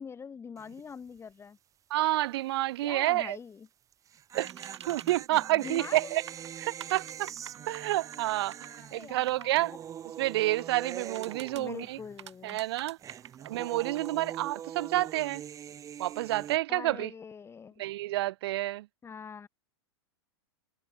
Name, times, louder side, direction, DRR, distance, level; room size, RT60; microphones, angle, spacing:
voice 1, 0.0-1.6 2.8-3.7 5.3-6.0 8.7-9.6 11.5-12.6 16.7-17.8 19.0-19.5, left 6 dB, 20° left, 3.1 m, -44 dB
sound 1, 0.6-0.9 1.2-1.3 3.9-12.3 12.5-16.6, right 9 dB, 25° right, 0.9 m, -43 dB
voice 2, 1.9-3.4 4.3-4.5 4.9-6.2 6.6-7.3 7.7-8.6 8.9-9.7 10.2-12.0 12.4-13.0 13.4-15.4 16.0-17.1 17.8-18.9, right 16 dB, 65° right, 1.4 m, -29 dB
sound 2, 4.5-5.1 5.7-6.0 6.3-9.5 10.6-11.6 12.2-14.1, right 10 dB, 80° right, 5.5 m, -47 dB
hypercardioid pair, 115°, 14 cm